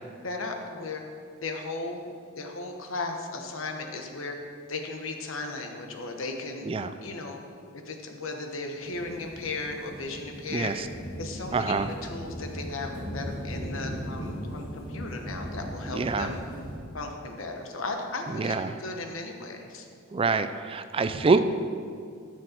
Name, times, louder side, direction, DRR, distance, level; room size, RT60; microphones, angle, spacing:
voice 1, 0.2-1.0 1.4-2.1 2.4-4.3 4.7-6.7 7.0-7.4 7.8-10.7 11.2-16.4 16.9-19.9, left 3 dB, 70° left, 3 dB, 1.2 m, -36 dB
sound 1, 8.8-16.8, equal, 40° left, 2.3 m, -38 dB
voice 2, 10.5-10.9 11.5-11.9 15.9-16.3 18.3-18.7 20.1-21.4, right 4 dB, 25° right, 11 dB, 0.3 m, -26 dB
14.0 x 6.3 x 4.5 m, 2.3 s
head